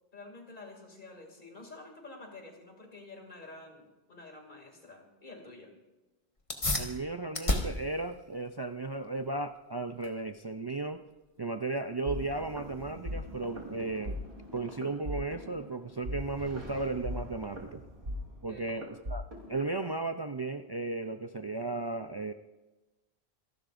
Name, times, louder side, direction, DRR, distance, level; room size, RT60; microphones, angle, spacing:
voice 1, 0.1-5.7 18.5-18.8, left 2 dB, 50° left, 2 dB, 2.7 m, -49 dB
sound 1, 6.4-16.4, left 2 dB, 30° left, 1.4 m, -39 dB
voice 2, 6.7-11.0 11.4-14.2 14.5-17.8 18.4-19.2 19.5-22.3, right 3 dB, 40° right, 7 dB, 0.3 m, -35 dB
sound 2, 12.1-19.6, left 1 dB, 80° right, 3.3 m, -40 dB
27.0 x 11.5 x 2.5 m, 1.1 s
omnidirectional pair, 1.1 m